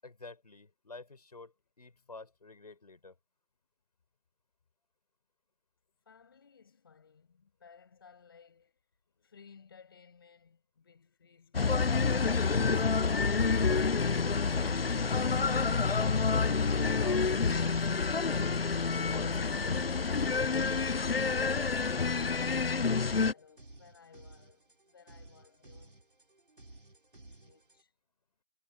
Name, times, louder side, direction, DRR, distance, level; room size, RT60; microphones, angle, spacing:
voice 1, 0.0-3.2 12.6-12.8 13.5-14.8 15.7-16.6 17.0-18.1 19.1-20.1, left 3 dB, 40° left, 6.4 m, -49 dB
voice 2, 6.1-8.8 9.1-12.2 20.8-26.0 27.4-27.9, left 6 dB, 25° left, 5.9 m, -59 dB
sound 1, 11.5-23.3, left 4 dB, 75° left, 0.6 m, -28 dB
sound 2, 12.7-27.8, right 2 dB, 60° right, 3.3 m, -56 dB
figure-of-eight pair, 165°, 30 cm